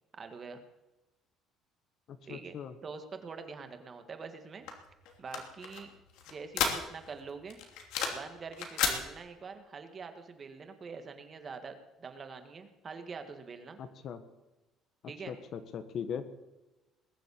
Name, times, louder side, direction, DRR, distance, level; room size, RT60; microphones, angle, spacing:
voice 1, 0.2-0.6 2.3-2.5 2.8-4.7 5.2-5.9 6.3-7.6 8.1-13.8 15.1-15.3, right 5 dB, 30° right, 7 dB, 1.8 m, -45 dB
voice 2, 2.1-2.7 13.8-14.2 15.3-16.3, left 7 dB, 50° left, 10 dB, 1.5 m, -39 dB
sound 1, 4.7-7.2 7.5-8.3 8.5-9.0, left 7 dB, 85° left, 2.9 m, -33 dB
20.5 x 7.7 x 8.8 m, 1.0 s
cardioid pair, 140°, 0 cm